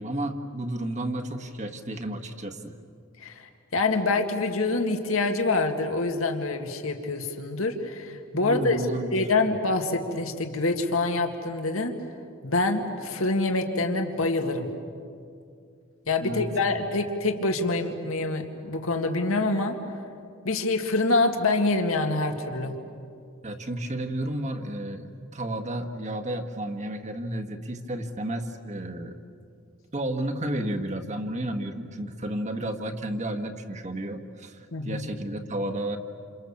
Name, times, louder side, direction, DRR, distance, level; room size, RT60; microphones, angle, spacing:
voice 1, 0.0-2.7 8.3-9.2 16.2-16.8 23.4-29.1 29.9-36.0, right 1 dB, 35° right, 6 dB, 1.7 m, -32 dB
voice 2, 3.2-8.8 9.1-11.9 12.4-14.7 16.1-20.0 20.4-22.7 34.7-35.1, left 3 dB, 75° left, 4 dB, 2.1 m, -26 dB
29.0 x 28.0 x 7.2 m, 2.4 s
head